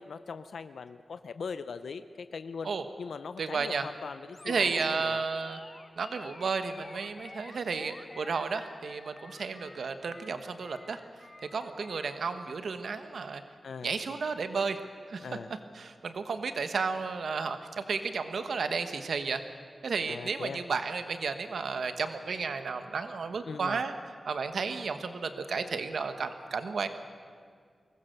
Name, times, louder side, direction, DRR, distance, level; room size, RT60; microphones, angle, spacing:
voice 1, 0.0-2.7 3.0-5.3 13.6-13.9 15.2-15.5 20.1-20.6 23.5-23.8, left 5 dB, 90° left, 11 dB, 0.6 m, -40 dB
voice 2, 3.4-3.8 4.5-5.6 6.0-11.0 11.5-13.4 13.8-14.8 15.1-15.3 15.7-19.4 19.8-23.9 24.2-26.9, right 5 dB, 85° right, 9 dB, 1.2 m, -32 dB
Animal, 4.3-12.3, left 2 dB, 35° left, 1.3 m, -50 dB
22.5 x 19.5 x 6.7 m, 2.1 s
wide cardioid pair, 110°, 0 cm